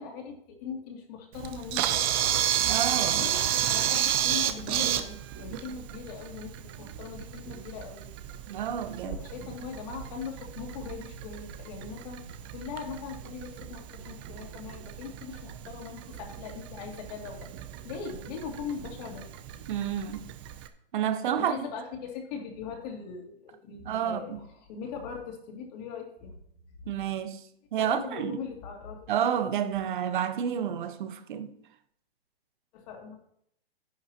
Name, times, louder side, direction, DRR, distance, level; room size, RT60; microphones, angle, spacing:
voice 1, 0.0-2.4 3.1-8.1 9.0-12.2 12.5-17.5 17.8-19.3 19.6-19.7 21.3-24.4 24.7-26.3 27.8-29.1 32.7-33.2, left 6 dB, 40° left, 2.7 m, -40 dB
Camera, 1.3-20.7, right 11 dB, 25° right, 0.6 m, -32 dB
voice 2, 2.7-3.2 8.5-9.2 19.7-20.2 20.9-21.6 23.8-24.4 26.9-27.4 27.7-28.4 29.1-31.5, right 9 dB, 50° right, 1.2 m, -30 dB
11.0 x 10.5 x 3.0 m
hypercardioid pair, 155°, 31 cm